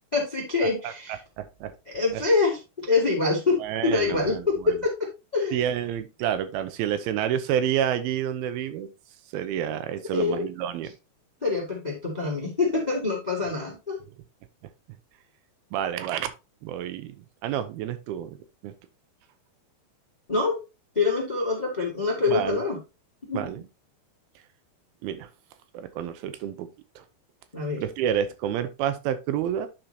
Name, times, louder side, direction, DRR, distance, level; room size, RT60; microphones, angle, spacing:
voice 1, 0.1-1.2 1.9-5.6 10.1-10.4 11.4-14.0 20.3-20.6 20.9-22.8 23.3-23.4 27.5-27.8, left 3 dB, 25° left, 0.9 m, -25 dB
voice 2, 1.4-1.7 2.1-2.2 3.6-4.4 5.5-8.9 9.3-10.9 15.7-16.3 16.6-17.2 17.4-18.7 22.3-22.6 23.3-23.6 25.0-25.3 25.7-26.7 27.0-27.1 27.8-29.7, right 10 dB, 80° right, 2.6 m, -29 dB
11.5 x 4.5 x 2.8 m
omnidirectional pair, 4.4 m